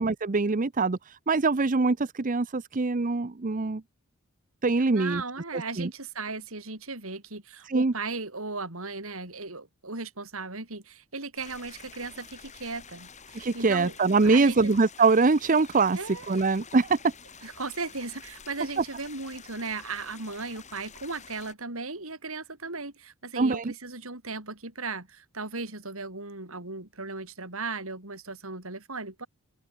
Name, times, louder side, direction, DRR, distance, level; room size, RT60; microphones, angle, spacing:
voice 1, 0.0-3.8 4.6-5.2 5.5-5.9 7.7-7.9 13.3-17.0 23.4-23.7, right 3 dB, 40° right, 0.6 m, -24 dB
voice 2, 4.9-13.9 14.2-14.8 15.9-16.2 17.4-29.3, right 3 dB, 70° right, 4.5 m, -37 dB
sound 1, 11.4-21.5, left 6 dB, 35° left, 4.6 m, -49 dB
open air
head